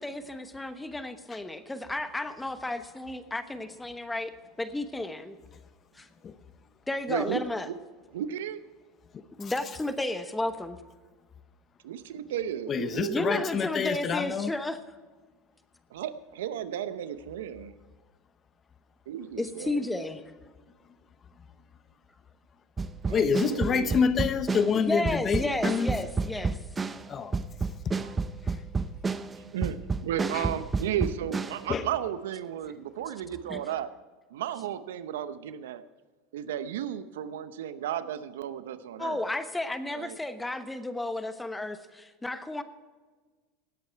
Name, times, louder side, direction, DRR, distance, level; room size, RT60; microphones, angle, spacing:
voice 1, 0.0-4.3 4.6-5.4 6.0-6.1 6.9-7.7 9.4-10.8 13.1-14.8 19.4-20.2 24.7-26.6 33.5-33.6 39.0-42.6, left 2 dB, 10° left, 10 dB, 1.1 m, -32 dB
voice 2, 7.1-7.7 8.1-8.6 11.8-13.5 15.9-17.7 19.1-19.8 23.1-24.0 28.0-28.1 29.5-33.9 34.3-35.8 36.3-39.2 39.9-40.2, right 10 dB, 80° right, 13 dB, 0.8 m, -34 dB
voice 3, 12.7-14.5 23.1-25.9 27.1-27.4 30.3-30.4 31.7-31.9, left 6 dB, 30° left, 12 dB, 0.9 m, -27 dB
sound 1, 22.8-31.6, right 4 dB, 20° right, 0.6 m, -30 dB
17.5 x 8.5 x 4.6 m, 1.4 s
hypercardioid pair, 105°, 0 cm